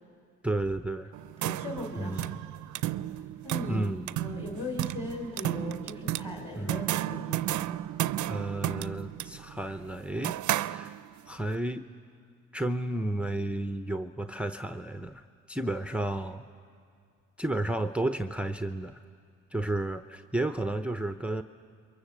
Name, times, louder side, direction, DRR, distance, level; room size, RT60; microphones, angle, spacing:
voice 1, 0.4-1.1 2.0-2.4 3.7-4.1 6.6-6.8 8.3-10.4 10.7-11.0 11.3-11.9 12.5-16.4 17.4-19.0 19.5-21.4, right 1 dB, 5° right, 9 dB, 0.7 m, -32 dB
sound 1, 1.1-11.3, right 13 dB, 75° right, 0.6 m, -33 dB
voice 2, 1.4-2.3 3.1-3.9 4.2-7.6, left 2 dB, 20° left, 0 dB, 3.2 m, -39 dB
28.5 x 23.0 x 7.4 m, 2.3 s
cardioid pair, 90°, 30 cm